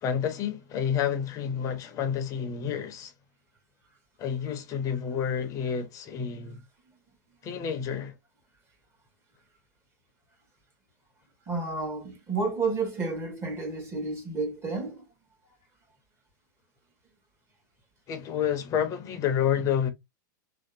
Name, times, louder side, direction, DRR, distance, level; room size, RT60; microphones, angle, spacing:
voice 1, 0.0-3.1 4.2-6.6 7.4-8.1 18.1-19.9, left 8 dB, 30° left, 0.6 m, -29 dB
voice 2, 11.5-15.0, right 3 dB, 25° right, 1.1 m, -31 dB
2.6 x 2.0 x 2.4 m
hypercardioid pair, 125°, 11 cm